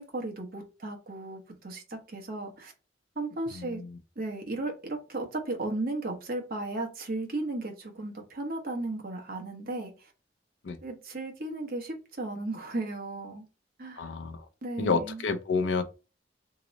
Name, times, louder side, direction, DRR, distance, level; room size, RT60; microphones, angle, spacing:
voice 1, 0.0-2.7 3.2-3.8 4.2-10.1 10.8-13.5 13.8-14.1 14.6-15.2, right 2 dB, 55° right, 0.9 m, -35 dB
voice 2, 3.5-4.0 10.6-10.8 14.0-14.5 14.8-15.8, left 4 dB, 80° left, 0.5 m, -29 dB
2.9 x 2.0 x 3.9 m
head